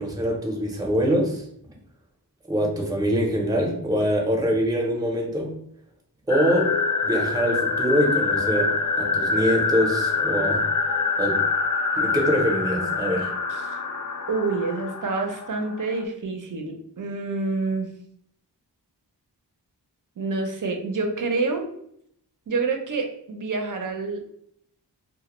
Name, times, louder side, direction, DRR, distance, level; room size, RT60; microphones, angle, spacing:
voice 1, 0.0-1.4 2.5-5.5 6.3-6.7 7.0-8.7 9.0-10.6 11.2-11.4 12.0-13.3, equal, 10° right, 0 dB, 0.6 m, -24 dB
sound 1, 6.3-15.9, left 4 dB, 50° left, 0.4 m, -25 dB
voice 2, 14.3-17.9 20.2-21.7 22.5-24.3, right 3 dB, 50° right, 4 dB, 0.5 m, -27 dB
2.1 x 2.1 x 3.0 m, 0.69 s
cardioid pair, 45°, 42 cm